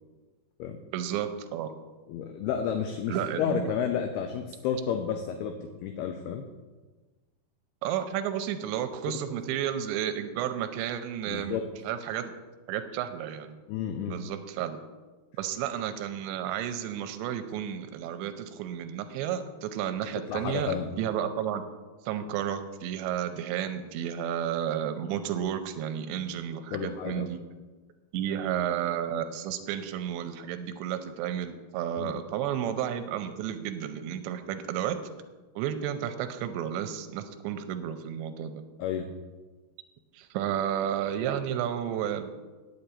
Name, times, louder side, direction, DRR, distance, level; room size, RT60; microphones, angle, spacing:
voice 1, 0.9-1.7 3.1-3.7 7.8-11.6 11.8-12.3 12.7-13.6 14.1-14.8 15.4-21.6 22.1-27.4 28.1-35.0 35.6-38.6 40.1-42.3, right 9 dB, 90° right, 8 dB, 2.9 m, -32 dB
voice 2, 2.1-6.5 11.3-11.7 13.7-14.2 20.3-21.0 26.7-27.3 32.0-32.1 38.8-39.1, left 8 dB, 75° left, 6 dB, 2.5 m, -31 dB
9.2 x 7.9 x 8.5 m, 1.3 s
omnidirectional pair, 5.0 m